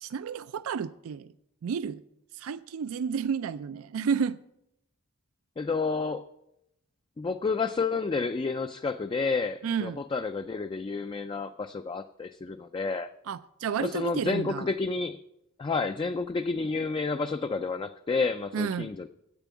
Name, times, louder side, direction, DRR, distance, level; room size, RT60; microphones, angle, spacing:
voice 1, 0.0-1.3 1.6-2.0 2.4-4.4 9.6-10.0 13.3-14.7 18.5-18.9, right 6 dB, 75° right, 14 dB, 0.4 m, -31 dB
voice 2, 5.6-6.3 7.2-13.1 13.8-15.2 15.6-19.1, left 4 dB, 25° left, 7 dB, 0.3 m, -30 dB
8.4 x 7.0 x 8.2 m, 0.82 s
head